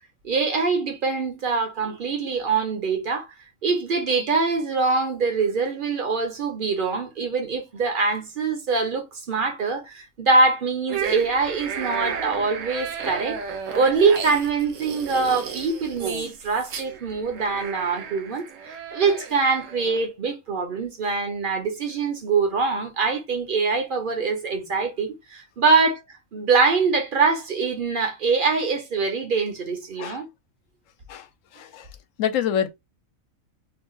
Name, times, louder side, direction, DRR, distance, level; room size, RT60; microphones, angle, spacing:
voice 1, 0.2-3.3 3.6-26.0 26.3-30.3, right 4 dB, 45° right, 0.8 m, -24 dB
sound 1, 10.9-20.1, right 7 dB, 70° right, 1.1 m, -33 dB
voice 2, 31.5-31.9 32.2-32.7, left 9 dB, 75° left, 0.9 m, -26 dB
2.7 x 2.4 x 3.7 m
omnidirectional pair, 1.4 m